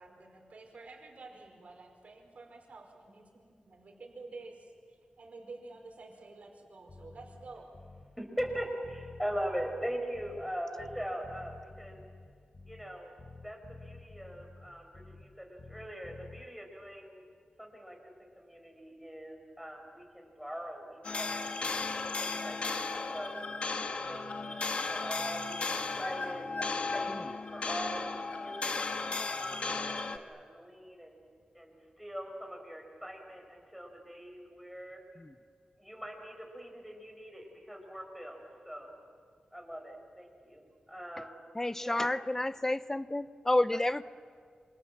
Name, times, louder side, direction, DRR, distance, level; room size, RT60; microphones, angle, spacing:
voice 1, 0.0-7.7, right 3 dB, 60° right, 0 dB, 4.9 m, -50 dB
Bass guitar, 6.9-8.1 8.4-10.5 10.8-12.9 13.2-15.3 15.6-16.5, left 3 dB, 35° left, 1.5 m, -51 dB
voice 2, 8.2-12.0 12.7-13.2 13.4-17.2 17.6-21.6 22.2-26.4 26.9-28.8 29.4-31.2 31.5-35.0 35.8-38.9 39.5-41.4 41.8-42.2, equal, ahead, 2 dB, 5.4 m, -41 dB
sound 1, 21.0-30.2, left 3 dB, 50° left, 1.5 m, -35 dB
voice 3, 41.5-44.0, left 1 dB, 15° left, 14 dB, 0.7 m, -30 dB
28.0 x 27.0 x 7.5 m, 2.1 s
wide cardioid pair, 120°, 3 cm